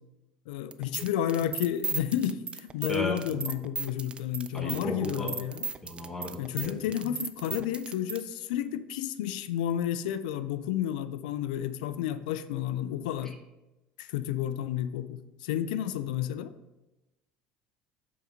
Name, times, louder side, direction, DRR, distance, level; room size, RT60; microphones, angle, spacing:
voice 1, 0.5-5.7 6.4-13.3 14.0-16.5, left 11 dB, 80° left, 13 dB, 0.4 m, -31 dB
sound 1, 0.7-8.2, right 5 dB, 25° right, 0.4 m, -36 dB
voice 2, 2.9-3.2 4.5-5.4 5.8-6.9, equal, 10° left, 2 dB, 1.4 m, -35 dB
7.1 x 4.0 x 4.5 m, 1.0 s
hypercardioid pair, 85°, 4 cm